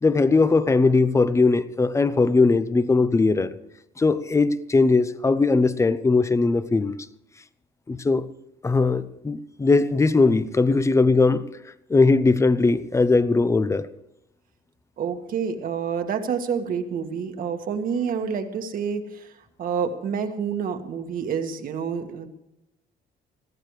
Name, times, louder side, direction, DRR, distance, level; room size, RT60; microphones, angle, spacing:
voice 1, 0.0-3.6 4.0-7.0 7.9-8.3 8.6-11.5 11.9-13.9, left 3 dB, 15° left, 0.7 m, -20 dB
voice 2, 15.0-22.3, right 6 dB, 55° right, 1.7 m, -28 dB
21.5 x 14.5 x 3.3 m
cardioid pair, 110°, 17 cm